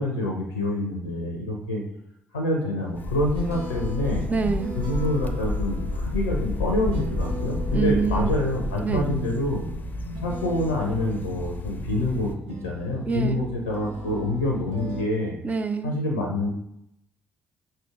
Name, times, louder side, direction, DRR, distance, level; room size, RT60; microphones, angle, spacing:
voice 1, 0.0-1.8 2.3-4.3 4.8-9.6 10.2-15.4 15.8-16.5, left 1 dB, 85° left, 0 dB, 0.6 m, -27 dB
sound 1, 2.9-12.3, left 2 dB, 30° left, 0.6 m, -31 dB
sound 2, 2.9-15.0, right 1 dB, 65° right, 0.9 m, -37 dB
voice 2, 4.3-4.8 7.7-8.4 8.8-9.1 13.1-13.5 15.4-16.0, right 5 dB, 25° right, 7 dB, 0.5 m, -26 dB
5.6 x 2.6 x 3.6 m, 0.77 s
figure-of-eight pair, 45°, 6 cm